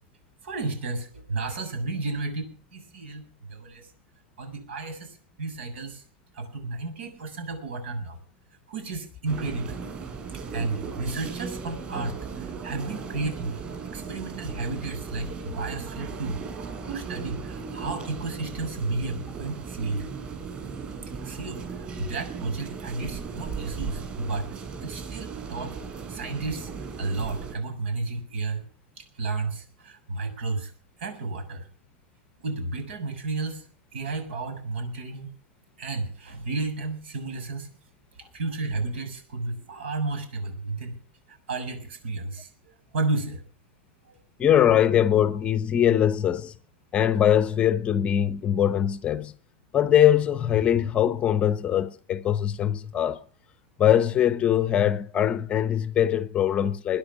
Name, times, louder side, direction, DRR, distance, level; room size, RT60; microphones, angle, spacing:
voice 1, 0.4-3.2 3.5-3.9 4.4-6.0 6.3-8.2 8.7-9.8 10.5-13.6 13.9-16.4 16.9-20.1 21.2-24.5 24.8-25.7 26.1-26.7 27.0-28.6 29.0-30.7 31.0-31.7 32.4-33.6 33.9-35.3 35.8-37.7 38.3-41.0 41.3-43.4 44.1-44.2, right 3 dB, 80° right, 6.9 m, -32 dB
sound 1, 9.3-27.5, right 5 dB, 20° right, 6.3 m, -37 dB
voice 2, 44.4-46.6 46.9-49.3 49.7-53.2 53.8-57.0, left 10 dB, 20° left, 0.7 m, -22 dB
22.0 x 10.5 x 6.3 m
supercardioid pair, 165°, 6 cm